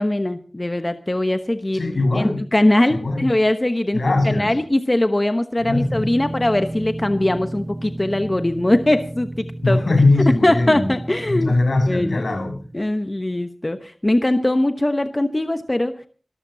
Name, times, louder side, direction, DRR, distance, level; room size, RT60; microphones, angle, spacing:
voice 1, 0.0-1.9 2.1-9.8 10.2-11.5 11.9-12.3 12.7-16.1, left 1 dB, 30° left, 8 dB, 1.1 m, -21 dB
voice 2, 1.7-2.4 2.9-3.3 3.9-4.5 5.7-6.1 9.6-10.9 11.3-12.6, left 2 dB, 80° left, 3 dB, 6.3 m, -20 dB
sound 1, 5.6-12.8, right 1 dB, 60° right, 5.0 m, -33 dB
26.5 x 13.5 x 2.8 m, 0.39 s
wide cardioid pair, 60°, 0 cm